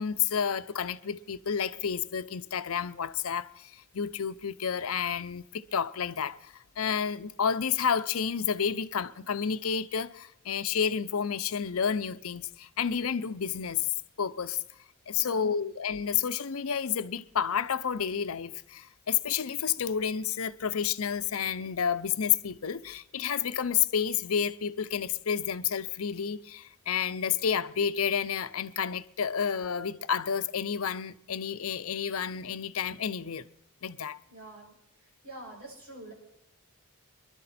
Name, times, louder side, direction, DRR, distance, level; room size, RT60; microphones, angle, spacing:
voice 1, 0.0-13.9 14.2-14.6 15.1-33.4 33.8-34.2, left 7 dB, 75° left, 0.6 m, -30 dB
voice 2, 15.1-15.6 34.3-34.7 35.2-36.1, right 1 dB, 85° right, 6.2 m, -46 dB
25.0 x 11.5 x 4.2 m
head